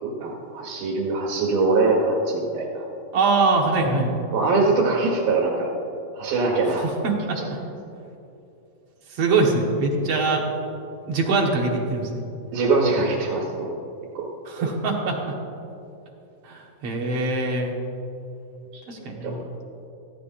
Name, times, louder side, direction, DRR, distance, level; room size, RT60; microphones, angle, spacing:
voice 1, 0.0-2.8 4.3-5.7 6.2-6.8 7.4-7.5 12.5-13.7 14.2-14.3 19.2-19.4, right 3 dB, 85° right, -3 dB, 3.5 m, -22 dB
voice 2, 3.1-4.1 6.7-7.6 9.1-10.5 11.1-12.2 14.5-15.2 16.4-17.7 18.9-19.5, right 3 dB, 55° right, -1 dB, 1.9 m, -23 dB
18.5 x 14.0 x 2.5 m, 2.8 s
omnidirectional pair, 4.1 m